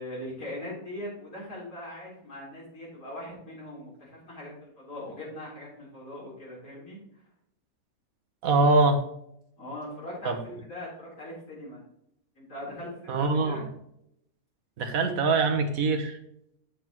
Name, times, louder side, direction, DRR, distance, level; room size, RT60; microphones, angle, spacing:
voice 1, 0.0-7.0 9.6-11.8 12.4-13.6, left 1 dB, 75° left, -6 dB, 4.3 m, -40 dB
voice 2, 8.4-9.0 10.2-10.5 13.1-13.7 14.8-16.2, right 3 dB, 75° right, 6 dB, 1.6 m, -23 dB
8.5 x 7.7 x 3.0 m, 0.76 s
omnidirectional pair, 1.5 m